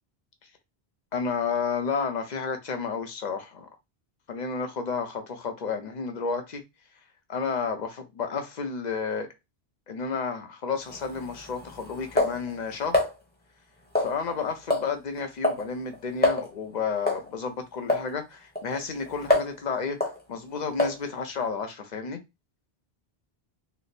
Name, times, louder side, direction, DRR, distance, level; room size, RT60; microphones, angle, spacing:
voice 1, 1.1-3.7 4.3-6.6 7.3-9.3 9.9-13.0 14.0-20.0 20.3-22.2, left 5 dB, 50° left, 0.7 m, -31 dB
sound 1, 10.8-13.1 13.9-14.4 14.7-14.9 15.2-15.7 15.9-16.0 16.2-16.5 17.1-17.3 17.9-18.1 18.6-19.6 20.0-20.2 20.8-21.1, left 2 dB, 10° left, 0.8 m, -26 dB
3.2 x 2.0 x 4.0 m
omnidirectional pair, 1.1 m